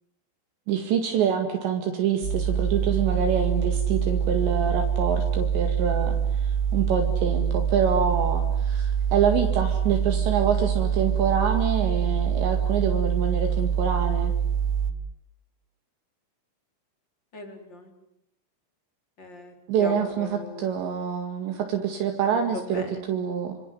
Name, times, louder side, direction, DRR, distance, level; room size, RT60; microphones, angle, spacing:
voice 1, 0.7-6.2 6.7-14.3 19.7-23.6, right 7 dB, 65° right, 5 dB, 4.0 m, -26 dB
sound 1, 2.2-14.9, right 7 dB, 90° right, 4.2 m, -25 dB
voice 2, 17.3-17.9 19.2-20.7 22.3-23.0, left 2 dB, 25° left, 5 dB, 4.3 m, -39 dB
27.5 x 26.5 x 7.9 m, 0.73 s
omnidirectional pair, 5.7 m